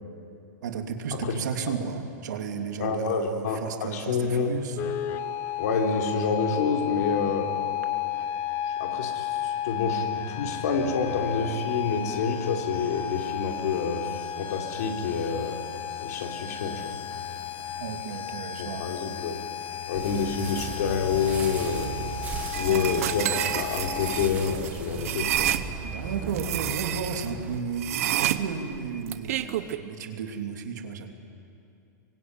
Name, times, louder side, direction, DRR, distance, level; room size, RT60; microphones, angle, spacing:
voice 1, 0.6-4.8 17.8-18.8 22.7-22.8 25.8-31.1, right 6 dB, 70° right, 4 dB, 2.9 m, -33 dB
voice 2, 2.8-4.6 5.6-7.5 8.7-15.6 16.0-17.0 18.3-19.4 19.9-21.9 22.5-25.5, left 5 dB, 60° left, 2 dB, 3.6 m, -28 dB
sound 1, 4.8-24.3, left 10 dB, 20° left, 0.9 m, -33 dB
sound 2, 19.9-27.6, right 5 dB, 15° right, 2.0 m, -38 dB
sound 3, 22.5-25.6 26.3-27.3 27.8-29.8, right 13 dB, 50° right, 1.1 m, -29 dB
27.0 x 23.5 x 9.1 m, 2.6 s
supercardioid pair, 170°, 10 cm